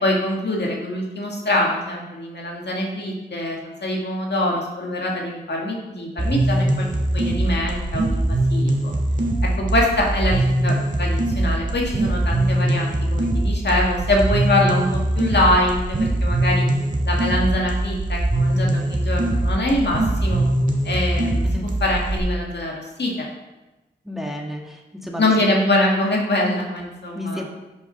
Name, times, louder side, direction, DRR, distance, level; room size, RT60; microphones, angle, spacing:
voice 1, 0.0-6.9 7.1-8.9 9.4-16.7 17.0-20.4 20.8-23.3 25.2-27.4, left 1 dB, 70° left, -1 dB, 1.9 m, -24 dB
sound 1, 6.2-22.2, right 1 dB, 45° right, 1.8 m, -22 dB
voice 2, 21.4-21.7 24.0-25.6 27.1-27.5, left 1 dB, ahead, 0 dB, 1.6 m, -32 dB
6.9 x 6.7 x 5.8 m, 1.1 s
wide cardioid pair, 75°, 18 cm